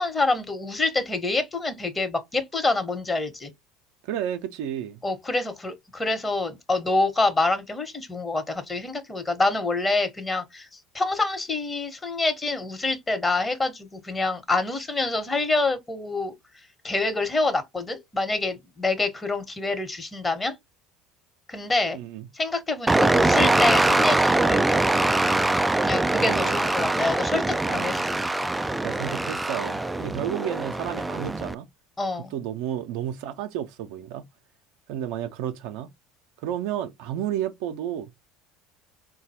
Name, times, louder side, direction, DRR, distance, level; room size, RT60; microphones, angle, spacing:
voice 1, 0.0-3.5 5.0-10.7 10.9-16.3 16.8-20.5 21.5-22.0 22.3-24.8 25.8-28.1 32.0-32.3, left 3 dB, 20° left, 1.1 m, -26 dB
voice 2, 4.0-5.0 21.9-22.3 26.2-26.6 27.6-28.0 28.8-31.7 32.3-34.2 34.9-35.9 36.4-38.1, right 10 dB, 70° right, 0.5 m, -31 dB
sound 1, 22.9-31.5, right 2 dB, 10° right, 0.3 m, -23 dB
3.9 x 2.2 x 2.7 m
hypercardioid pair, 75°, 0 cm